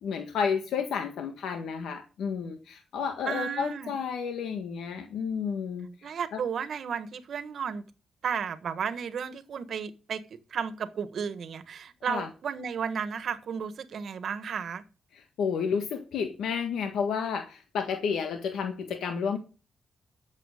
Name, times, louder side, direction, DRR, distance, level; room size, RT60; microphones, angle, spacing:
voice 1, 0.0-6.4 12.1-12.3 15.1-19.4, left 6 dB, 85° left, 1.5 m, -31 dB
voice 2, 3.3-4.0 6.0-7.8 8.2-10.2 10.5-14.8, right 7 dB, 65° right, 1.5 m, -33 dB
12.0 x 7.5 x 6.6 m
cardioid pair, 85°, 0 cm